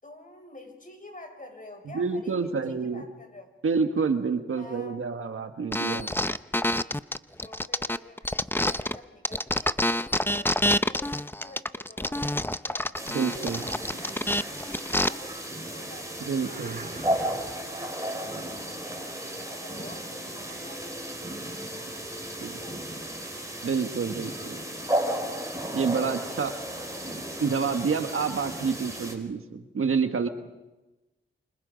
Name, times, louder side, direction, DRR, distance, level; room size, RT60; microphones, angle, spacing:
voice 1, 0.0-3.5 4.6-5.5 7.4-12.9 13.2-17.7 18.2-23.1, left 1 dB, 40° left, 4 dB, 5.8 m, -49 dB
voice 2, 1.9-3.0 3.6-6.1 13.1-13.6 16.2-16.8 22.4-22.6 23.6-24.6 25.7-26.5 27.4-30.3, right 5 dB, 90° right, 7 dB, 1.5 m, -28 dB
sound 1, 5.7-9.0 9.2-15.1, left 1 dB, 10° left, 0.7 m, -27 dB
sound 2, 12.9-29.1, right 1 dB, 15° right, 5.1 m, -34 dB
sound 3, 16.2-17.8, right 2 dB, 40° right, 2.1 m, -44 dB
28.0 x 26.0 x 5.2 m, 1.1 s
cardioid pair, 50°, 21 cm